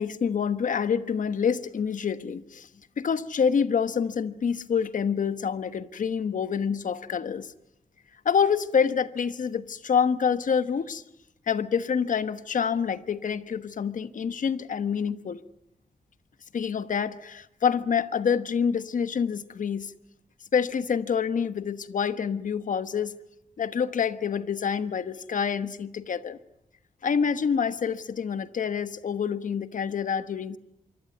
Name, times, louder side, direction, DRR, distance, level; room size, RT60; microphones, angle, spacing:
voice 1, 0.0-2.7 3.0-7.5 8.2-11.0 11.5-15.4 16.5-19.9 20.5-23.1 23.6-26.4 27.0-30.6, left 6 dB, 75° left, 1.2 m, -27 dB
26.0 x 24.0 x 9.4 m
wide cardioid pair, 110°, 14 cm